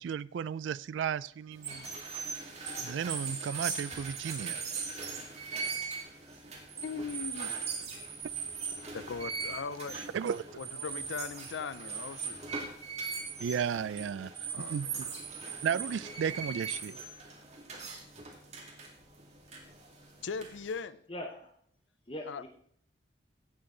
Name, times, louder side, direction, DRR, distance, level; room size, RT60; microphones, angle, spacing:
voice 1, 0.0-1.8 2.8-4.6 9.9-10.4 13.4-15.1 15.6-17.0, right 7 dB, 80° right, 0.3 m, -34 dB
sound 1, 1.5-20.8, right 5 dB, 35° right, 2.3 m, -40 dB
voice 2, 6.8-7.5 8.9-10.0 10.6-12.4 14.5-14.8 20.2-21.0 22.2-22.4, left 5 dB, 80° left, 0.5 m, -39 dB
voice 3, 21.1-21.5 22.1-22.5, left 1 dB, 30° left, 0.9 m, -40 dB
16.5 x 7.1 x 3.8 m
head